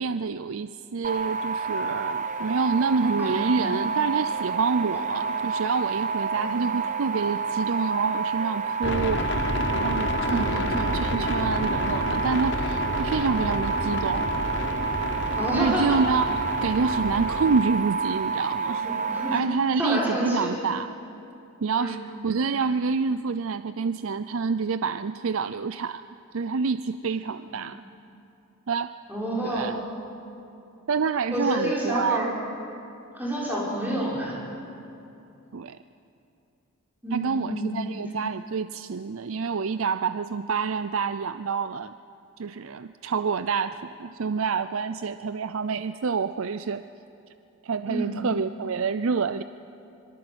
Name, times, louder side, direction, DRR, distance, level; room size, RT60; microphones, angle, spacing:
voice 1, 0.0-14.3 15.5-18.9 19.3-21.0 21.6-26.0 26.3-27.8 28.7-28.9 29.4-29.8 30.9-32.4 35.5-35.8 37.1-41.9 42.4-46.9 47.6-49.4, right 5 dB, 70° right, 12 dB, 0.5 m, -27 dB
sound 1, 1.0-19.4, right 5 dB, 35° right, 1.1 m, -29 dB
voice 2, 3.2-3.7 4.9-5.0 6.3-6.5 10.2-10.4 15.4-16.0 18.8-19.3 19.8-20.5 21.8-22.0 27.5-27.6 29.1-29.7 31.3-32.3 33.1-34.3 37.0-37.7 47.9-48.1, right 1 dB, 10° right, -6 dB, 6.2 m, -28 dB
sound 2, 8.8-17.6, left 2 dB, 55° left, 1.2 m, -30 dB
26.0 x 22.5 x 8.0 m, 2.8 s
head